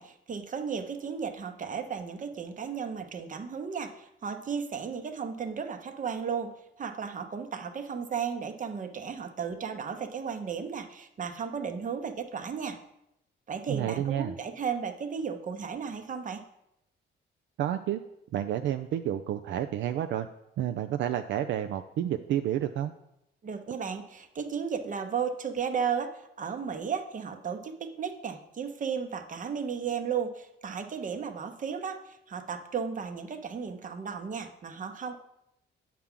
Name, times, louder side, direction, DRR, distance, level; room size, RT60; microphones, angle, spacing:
voice 1, 0.0-12.8 13.5-16.4 23.4-35.2, right 6 dB, 40° right, 8 dB, 0.8 m, -34 dB
voice 2, 13.7-14.4 17.6-18.0 18.3-20.3 20.6-22.9, right 11 dB, 70° right, 8 dB, 0.4 m, -30 dB
8.3 x 5.9 x 3.7 m, 0.81 s
cardioid pair, 90°, 20 cm